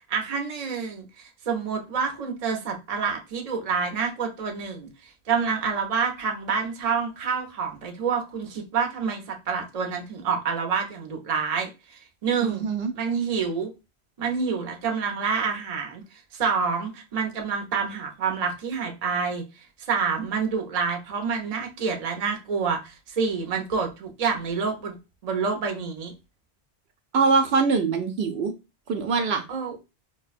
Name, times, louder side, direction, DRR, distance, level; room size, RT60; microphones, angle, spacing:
voice 1, 0.1-1.1 1.5-4.9 5.3-11.7 12.2-12.6 13.0-13.7 14.2-16.0 16.3-19.4 19.9-25.0 25.2-26.1 29.5-29.8, right 5 dB, 40° right, 0.7 m, -27 dB
voice 2, 12.4-12.9 27.1-28.5 28.9-29.4, right 4 dB, 70° right, 0.8 m, -23 dB
4.6 x 2.2 x 2.4 m
omnidirectional pair, 1.2 m